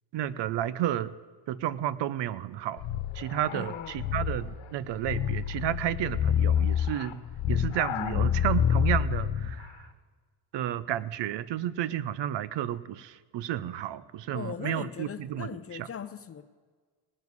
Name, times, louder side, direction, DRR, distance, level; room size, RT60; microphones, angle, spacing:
voice 1, 0.1-1.1 1.5-2.8 3.1-7.2 7.5-9.9 10.5-15.9, right 12 dB, 65° right, 18 dB, 0.7 m, -32 dB
sound 1, 2.8-9.7, left 9 dB, 75° left, 1.2 m, -28 dB
voice 2, 3.5-4.1 7.9-8.4 14.3-16.4, left 8 dB, 30° left, 13 dB, 0.6 m, -39 dB
18.5 x 7.2 x 9.5 m, 1.5 s
cardioid pair, 120°, 47 cm